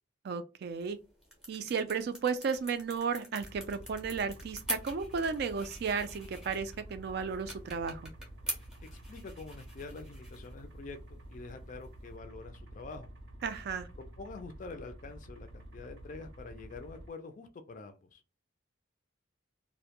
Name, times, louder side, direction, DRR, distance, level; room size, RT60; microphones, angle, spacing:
voice 1, 0.2-1.0 1.5-8.1 13.4-13.9, right 5 dB, 55° right, 0.3 m, -34 dB
sound 1, 0.6-12.2, equal, 5° right, 0.6 m, -46 dB
sound 2, 3.4-17.1, right 1 dB, 80° right, 0.7 m, -49 dB
voice 2, 8.8-13.1 14.0-18.2, left 3 dB, 40° left, 0.3 m, -46 dB
2.1 x 2.0 x 2.8 m
head